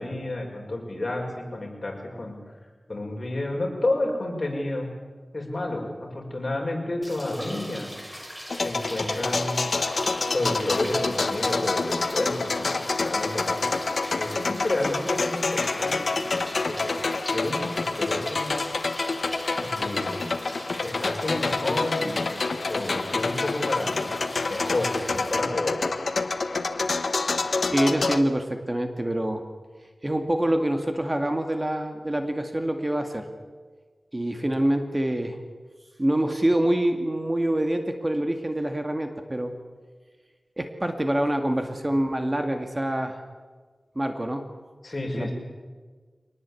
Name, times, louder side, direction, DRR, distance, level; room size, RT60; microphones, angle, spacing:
voice 1, 0.0-2.4 2.9-4.9 5.3-7.9 8.6-9.6 10.3-13.8 14.2-16.4 16.7-17.0 17.3-18.5 19.6-20.3 20.8-22.3 22.7-24.2 24.5-25.9 44.8-45.3, left 2 dB, 45° left, 0 dB, 6.4 m, -30 dB
sound 1, 7.0-25.4, equal, 5° right, 3.2 m, -40 dB
sound 2, 8.5-28.2, left 3 dB, 80° left, 1.3 m, -27 dB
voice 2, 27.7-29.4 30.0-33.3 34.1-35.4 36.0-39.5 40.6-43.2 44.0-44.5 45.1-45.3, right 1 dB, 25° right, 6 dB, 2.0 m, -26 dB
24.0 x 19.0 x 8.5 m, 1.4 s
wide cardioid pair, 70°, 0 cm